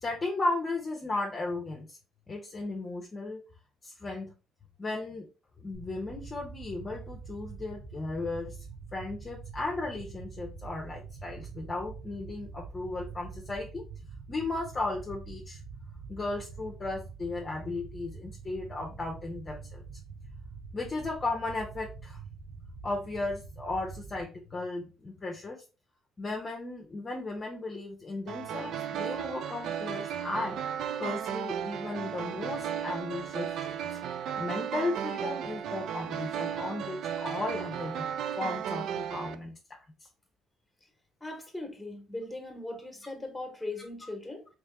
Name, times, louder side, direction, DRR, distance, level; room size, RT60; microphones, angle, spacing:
voice 1, 0.0-2.0 2.3-3.4 3.8-4.3 4.8-5.3 5.6-8.6 8.9-13.8 14.3-15.6 16.1-19.8 20.7-22.2 22.8-25.6 26.2-30.6 31.0-33.9 34.4-39.8 44.0-44.1, left 2 dB, 30° left, 0 dB, 0.8 m, -35 dB
sound 1, 5.7-24.2, right 5 dB, 85° right, 1.0 m, -45 dB
sound 2, 28.3-39.4, right 9 dB, 70° right, 0.4 m, -35 dB
voice 2, 41.2-44.5, left 2 dB, 5° left, 3 dB, 1.3 m, -39 dB
3.3 x 3.1 x 3.4 m, 0.33 s
cardioid pair, 105°, 0 cm